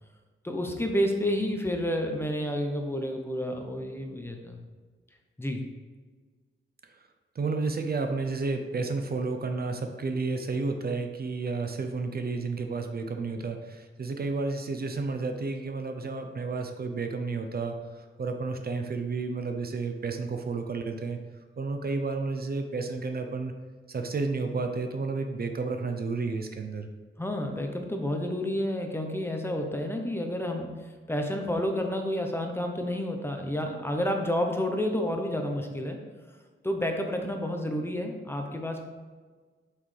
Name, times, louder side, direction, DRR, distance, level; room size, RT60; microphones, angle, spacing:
voice 1, 0.4-4.6 5.4-5.6 27.2-36.0 36.6-38.8, left 1 dB, 10° left, 3 dB, 0.8 m, -30 dB
voice 2, 7.3-21.2 21.6-23.5 23.9-26.9, right 3 dB, 50° right, 5 dB, 0.6 m, -31 dB
7.8 x 6.0 x 3.3 m, 1.5 s
wide cardioid pair, 170°, 21 cm